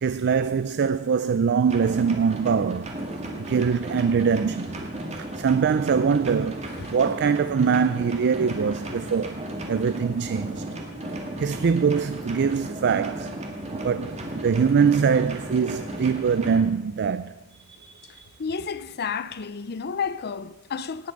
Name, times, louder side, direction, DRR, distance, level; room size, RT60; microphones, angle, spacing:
voice 1, 0.0-2.9 3.5-4.7 5.2-6.6 6.9-9.4 9.7-10.7 11.4-13.3 13.8-17.3 17.6-18.3, right 6 dB, 50° right, 0.4 m, -23 dB
sound 1, 1.7-16.6, right 1 dB, 30° right, 2.1 m, -35 dB
voice 2, 18.4-21.1, left 6 dB, 45° left, 0.6 m, -31 dB
18.5 x 9.5 x 5.2 m
head